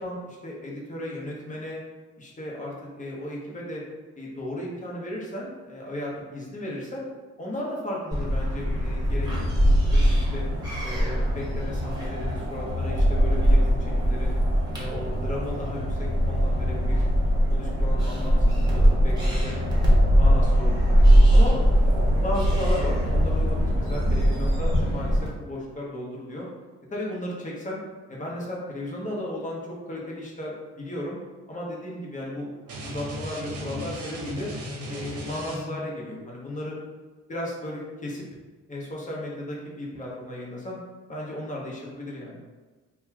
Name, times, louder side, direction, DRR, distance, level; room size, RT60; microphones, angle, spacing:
voice 1, 0.0-1.8 2.2-3.8 4.2-7.0 7.4-9.8 10.1-10.4 10.8-14.3 14.8-17.2 17.5-19.6 20.0-20.9 21.3-21.6 22.2-26.5 26.9-27.8 28.1-31.2 31.5-32.5 32.8-34.5 34.9-36.8 37.3-38.2 38.7-40.8 41.1-42.4, left 1 dB, 25° left, -4 dB, 0.9 m, -35 dB
sound 1, 8.1-25.3, equal, 15° right, 1.1 m, -21 dB
sound 2, 32.7-35.9, equal, 55° right, 0.8 m, -36 dB
2.8 x 2.3 x 3.5 m, 1.3 s
cardioid pair, 90°, 30 cm